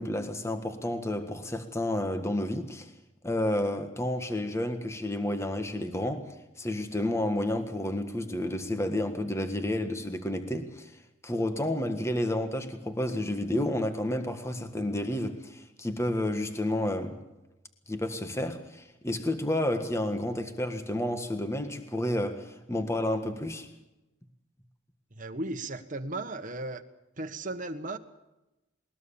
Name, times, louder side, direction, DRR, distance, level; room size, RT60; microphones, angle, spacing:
voice 1, 0.0-2.9 3.2-10.9 11.2-17.2 17.9-23.7, left 1 dB, 15° left, 1.5 m, -30 dB
voice 2, 25.2-26.8 27.2-28.0, right 2 dB, 45° right, 1.4 m, -35 dB
20.5 x 20.5 x 7.1 m
head